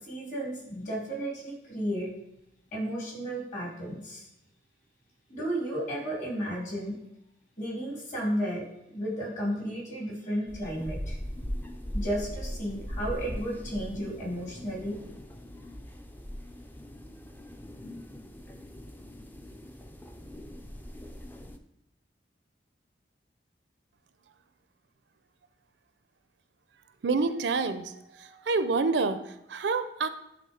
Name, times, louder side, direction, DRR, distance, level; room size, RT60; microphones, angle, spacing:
voice 1, 0.1-2.1 2.7-4.3 5.3-7.0 7.6-11.2 11.9-15.0, equal, 45° left, -3 dB, 2.6 m, -33 dB
sound 1, 10.5-21.6, equal, 10° left, 0.5 m, -40 dB
voice 2, 27.0-27.9 28.5-29.2 29.5-30.1, right 4 dB, 70° right, 11 dB, 0.5 m, -27 dB
10.0 x 3.5 x 5.0 m, 0.83 s
head